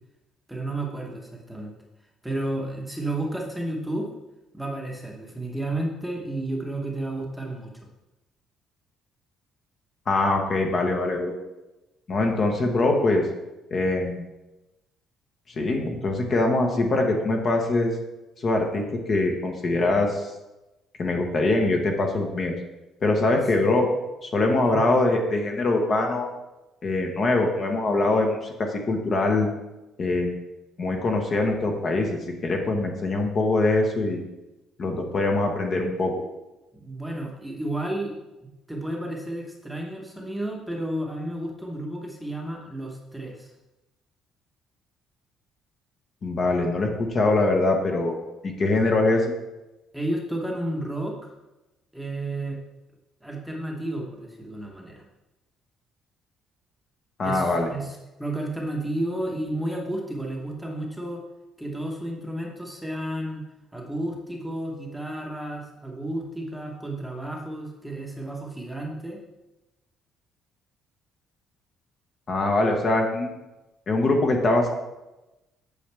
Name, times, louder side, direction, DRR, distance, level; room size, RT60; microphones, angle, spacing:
voice 1, 0.5-1.7 2.2-4.1 4.5-7.7 23.6-23.7 24.6-24.8 36.7-43.5 49.9-51.3 51.9-52.6 53.2-55.0 57.2-61.2 61.6-63.4 63.7-69.2, right 1 dB, ahead, -1 dB, 1.1 m, -32 dB
voice 2, 10.1-11.3 12.1-13.2 13.7-14.2 15.5-17.9 18.4-20.3 21.0-22.5 23.0-23.9 24.2-26.3 26.8-28.4 28.7-29.5 30.0-30.4 30.8-34.2 34.8-36.1 46.2-48.2 48.4-49.3 57.2-57.7 72.3-73.3 73.9-74.7, left 2 dB, 35° left, 2 dB, 1.1 m, -23 dB
8.4 x 7.1 x 3.4 m, 1.0 s
cardioid pair, 165°, 0 cm